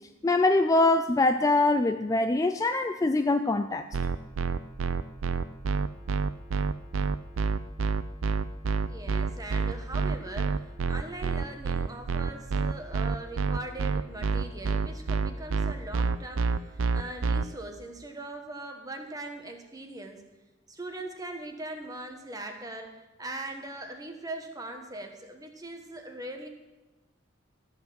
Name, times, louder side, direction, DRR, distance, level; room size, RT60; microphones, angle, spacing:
voice 1, 0.2-3.9, left 2 dB, 15° left, 7 dB, 0.3 m, -23 dB
sound 1, 3.9-17.4, right 4 dB, 85° right, 0.5 m, -27 dB
voice 2, 8.9-20.2 20.7-26.5, right 2 dB, 20° right, 4 dB, 1.2 m, -40 dB
13.0 x 5.9 x 7.6 m, 1.1 s
head